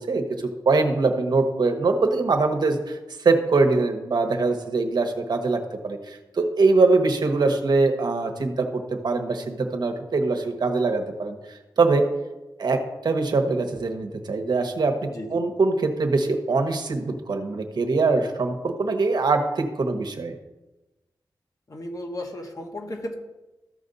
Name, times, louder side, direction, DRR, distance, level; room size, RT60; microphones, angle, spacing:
voice 1, 0.0-12.1 12.6-20.3, right 3 dB, 65° right, 5 dB, 1.1 m, -23 dB
voice 2, 15.1-15.4 21.7-23.1, left 1 dB, 45° left, 2 dB, 1.5 m, -34 dB
14.0 x 5.2 x 4.0 m, 1.1 s
cardioid pair, 70°, 8 cm